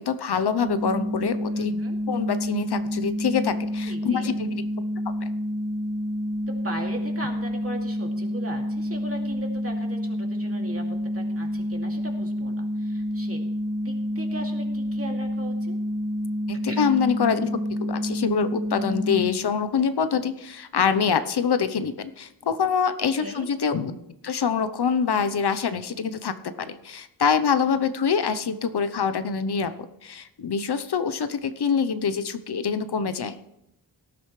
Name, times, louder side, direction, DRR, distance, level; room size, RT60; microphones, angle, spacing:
voice 1, 0.0-1.8 2.1-4.6 16.5-29.7 30.0-33.4, left 6 dB, 70° left, 11 dB, 0.9 m, -25 dB
sound 1, 0.6-19.3, equal, 55° right, 1.8 m, -28 dB
voice 2, 1.5-2.0 3.8-4.3 6.5-10.8 11.1-13.4 13.8-15.7 16.7-16.9 23.0-23.5, right 1 dB, 35° right, 1 dB, 2.5 m, -38 dB
18.0 x 12.0 x 3.2 m, 0.84 s
wide cardioid pair, 85°, 40 cm